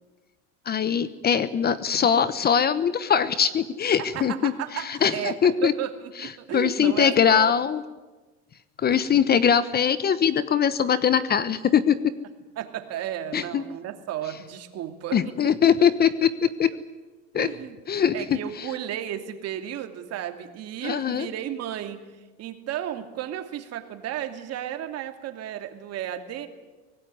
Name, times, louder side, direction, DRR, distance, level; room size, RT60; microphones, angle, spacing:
voice 1, 0.7-4.5 4.8-5.7 6.5-7.8 8.8-12.1 13.3-13.6 15.1-16.7 17.3-17.5 17.9-18.4 20.8-21.3, left 8 dB, 25° left, 14 dB, 1.0 m, -22 dB
voice 2, 4.0-7.5 8.9-9.0 12.6-15.5 17.3-17.8 18.1-26.5, right 11 dB, 45° right, 7 dB, 2.7 m, -34 dB
24.5 x 18.5 x 9.7 m, 1.2 s
supercardioid pair, 135°, 35 cm